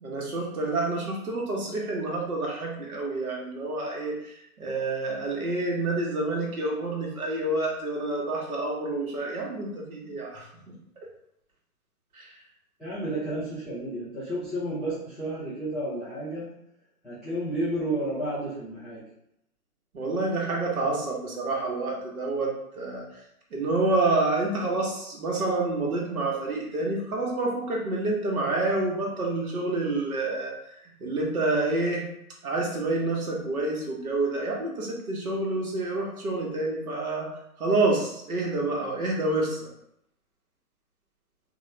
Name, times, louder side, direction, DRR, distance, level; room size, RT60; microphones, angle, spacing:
voice 1, 0.0-10.5 12.1-12.3 19.9-23.0 23.5-30.5 31.0-32.0 32.4-37.3 37.6-39.6, right 2 dB, 70° right, -2 dB, 1.3 m, -28 dB
voice 2, 12.8-16.5 17.0-19.0, right 1 dB, ahead, -14 dB, 0.3 m, -31 dB
3.5 x 2.5 x 3.2 m, 0.76 s
figure-of-eight pair, 135°, 45 cm